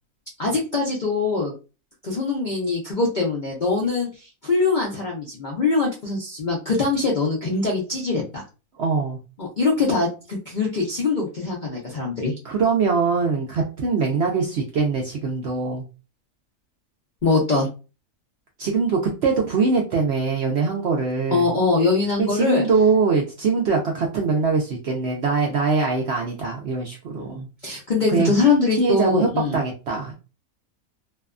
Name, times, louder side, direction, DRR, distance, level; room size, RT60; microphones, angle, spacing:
voice 1, 0.4-1.5 2.0-8.4 9.4-12.3 17.2-17.7 21.3-22.6 27.2-29.6, left 3 dB, 60° left, -2 dB, 0.4 m, -23 dB
voice 2, 8.8-9.2 12.4-15.8 18.6-21.5 22.2-27.5 28.1-28.3 28.8-30.1, right 4 dB, 70° right, 1 dB, 0.6 m, -22 dB
2.6 x 2.2 x 2.4 m, 0.32 s
omnidirectional pair, 1.6 m